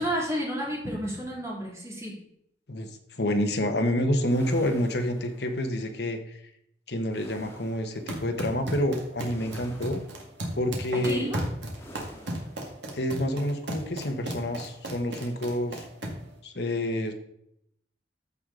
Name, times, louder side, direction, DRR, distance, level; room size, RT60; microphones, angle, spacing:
voice 1, 0.0-2.2 10.9-11.4, equal, 15° right, -3 dB, 2.5 m, -31 dB
voice 2, 2.7-6.4 6.9-10.0 10.5-11.3 12.9-15.9 16.4-17.1, left 1 dB, 60° left, 6 dB, 1.2 m, -28 dB
sound 1, 4.2-5.8 7.1-8.0 9.2-10.3 11.7-12.7, equal, 15° left, 1.7 m, -48 dB
sound 2, 7.9-16.3, right 1 dB, 70° right, 2.0 m, -36 dB
14.0 x 4.9 x 3.9 m, 0.75 s
head